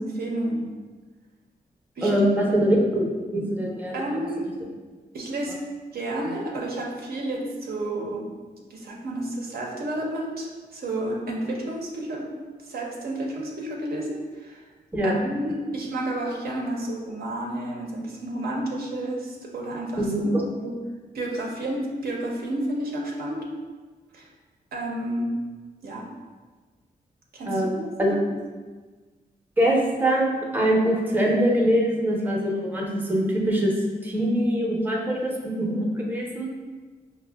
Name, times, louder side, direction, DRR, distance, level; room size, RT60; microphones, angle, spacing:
voice 1, 0.2-0.7 2.0-2.2 3.9-4.5 5.1-5.6 5.9-8.2 8.7-12.3 12.6-14.6 15.0-20.0 20.6-20.7 21.1-23.5 24.1-24.3 24.7-25.3 25.8-26.1 27.3-28.2, right 1 dB, 70° right, -1 dB, 0.6 m, -31 dB
voice 2, 2.0-4.1 14.9-15.2 20.0-20.4 27.5-28.1 29.6-33.7 34.0-36.5, equal, 10° right, -2 dB, 0.5 m, -23 dB
5.0 x 2.0 x 2.2 m, 1.4 s
cardioid pair, 85°, 16 cm